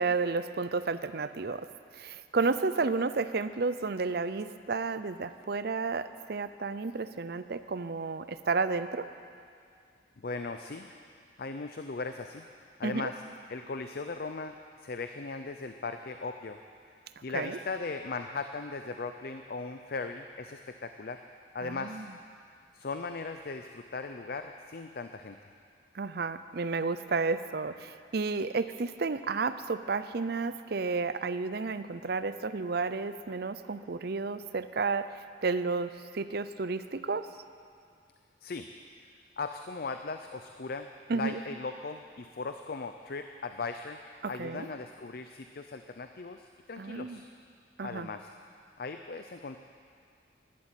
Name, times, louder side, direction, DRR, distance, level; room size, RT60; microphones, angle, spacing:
voice 1, 0.0-1.7 1.9-9.1 12.8-13.1 17.2-17.6 21.6-22.1 25.9-37.3 41.1-41.4 44.2-44.7 46.8-47.2 47.8-48.1, right 4 dB, 55° right, 12 dB, 0.6 m, -32 dB
voice 2, 10.2-10.9 11.4-12.5 12.8-13.2 13.5-16.6 17.2-21.2 21.5-22.0 22.7-25.5 38.4-38.7 39.0-39.1 39.4-44.0 44.3-47.3 47.8-48.3 48.8-49.6, left 4 dB, 50° left, 7 dB, 0.5 m, -38 dB
12.0 x 11.5 x 8.9 m, 2.3 s
head